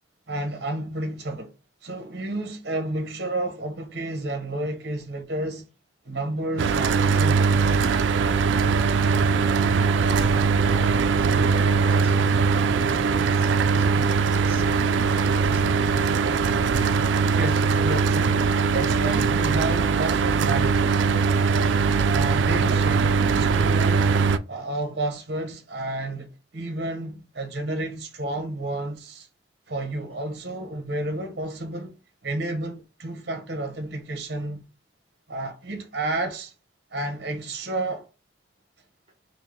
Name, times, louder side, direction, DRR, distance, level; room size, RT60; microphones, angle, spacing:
voice 1, 0.3-1.5 1.8-5.7 6.0-7.8 17.3-18.5 18.7-21.1 22.1-24.1 24.5-29.3 29.7-32.0 32.2-34.6 35.3-36.5 36.9-38.1, right 2 dB, 60° right, 0.9 m, -31 dB
Mechanical fan, 6.6-24.4, right 5 dB, 80° right, 0.3 m, -21 dB
voice 2, 10.0-15.9, equal, 30° right, 1.3 m, -42 dB
4.5 x 2.1 x 3.6 m
head